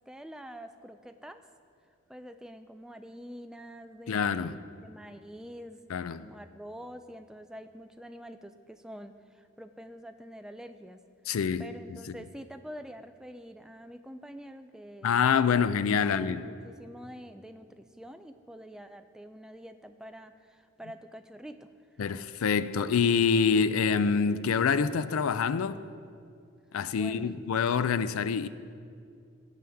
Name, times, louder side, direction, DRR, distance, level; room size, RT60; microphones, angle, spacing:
voice 1, 0.1-1.4 2.1-5.8 6.2-11.0 11.3-21.7 26.9-27.4, equal, 5° right, 0.3 m, -46 dB
voice 2, 4.1-4.6 5.9-6.3 11.3-11.7 12.1-12.2 15.0-16.4 22.0-25.8 26.7-28.5, left 6 dB, 90° left, 0.4 m, -26 dB
16.5 x 7.8 x 3.5 m
head